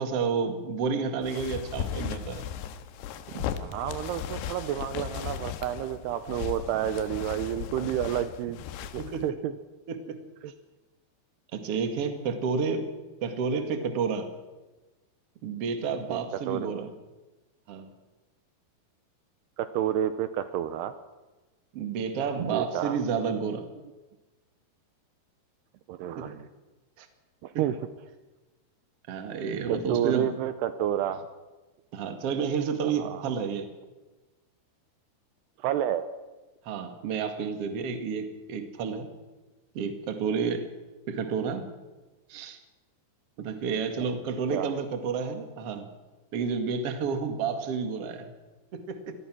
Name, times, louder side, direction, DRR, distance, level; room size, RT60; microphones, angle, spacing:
voice 1, 0.0-2.5 3.3-3.4 9.0-9.2 9.9-10.2 11.5-12.9 13.2-14.3 15.4-16.9 17.7-17.9 21.7-23.7 26.2-26.3 27.0-27.1 29.1-30.3 31.9-33.7 36.7-39.1 39.7-40.7 41.1-41.6 42.3-42.6 43.4-45.9 46.3-48.3 48.7-49.1, right 5 dB, 45° right, 7 dB, 2.3 m, -30 dB
sound 1, 1.2-9.3, left 9 dB, 80° left, 3.1 m, -37 dB
voice 2, 3.6-9.6 10.4-10.5 16.1-16.2 16.5-16.8 19.6-20.9 22.4-23.0 25.9-26.5 27.4-27.8 29.5-31.3 32.8-33.2 35.6-36.0 44.5-44.8, right 11 dB, 80° right, 11 dB, 2.8 m, -30 dB
25.5 x 19.5 x 6.2 m, 1.2 s
omnidirectional pair, 5.0 m